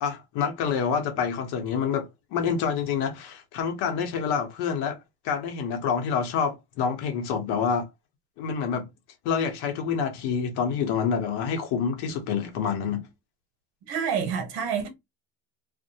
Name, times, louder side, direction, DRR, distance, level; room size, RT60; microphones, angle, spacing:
voice 1, 0.0-5.0 5.2-7.9 8.4-8.9 9.2-13.1, left 6 dB, 85° left, 0.9 m, -27 dB
voice 2, 13.9-14.9, right 7 dB, 85° right, 1.1 m, -27 dB
2.5 x 2.1 x 2.7 m
cardioid pair, 165°, 38 cm